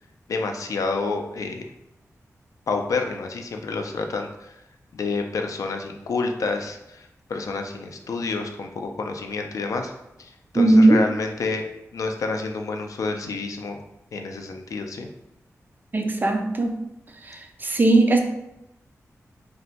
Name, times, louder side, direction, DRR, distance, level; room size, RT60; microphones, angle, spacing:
voice 1, 0.3-1.6 2.7-4.6 4.9-9.9 10.2-11.6 11.9-13.8 14.1-15.1, left 3 dB, 75° left, 4 dB, 0.4 m, -29 dB
voice 2, 10.6-11.0 15.9-16.7 17.6-18.2, right 2 dB, 35° right, 4 dB, 0.3 m, -17 dB
2.6 x 2.1 x 4.0 m, 0.87 s
wide cardioid pair, 120°, 6 cm